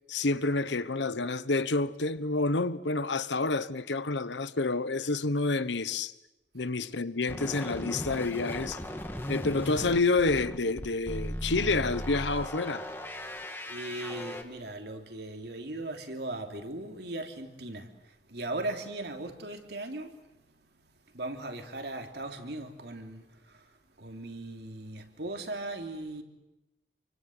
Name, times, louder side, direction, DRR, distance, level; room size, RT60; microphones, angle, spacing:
voice 1, 0.1-6.1 6.5-8.8 9.3-12.9, left 3 dB, 90° left, 1.2 m, -28 dB
sound 1, 7.3-14.4, equal, 10° left, 2.1 m, -37 dB
voice 2, 13.3-20.1 21.1-23.7 24.0-26.2, right 2 dB, 70° right, 3.1 m, -38 dB
28.5 x 24.5 x 7.9 m
head